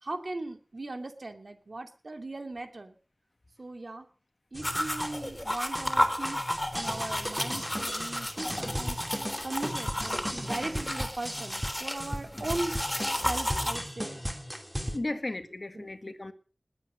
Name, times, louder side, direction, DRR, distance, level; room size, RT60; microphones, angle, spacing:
voice 1, 0.0-2.9 3.6-4.1 4.5-6.4 6.7-12.8 13.2-14.2 15.1-15.2 15.7-15.9, right 2 dB, 60° right, 2.7 m, -38 dB
sound 1, 4.5-15.0, equal, ahead, 3.1 m, -36 dB
sound 2, 4.6-13.8, left 1 dB, 20° left, 3.5 m, -33 dB
voice 2, 14.9-16.3, left 2 dB, 50° left, 2.0 m, -35 dB
20.0 x 9.1 x 6.6 m
wide cardioid pair, 60°, 0 cm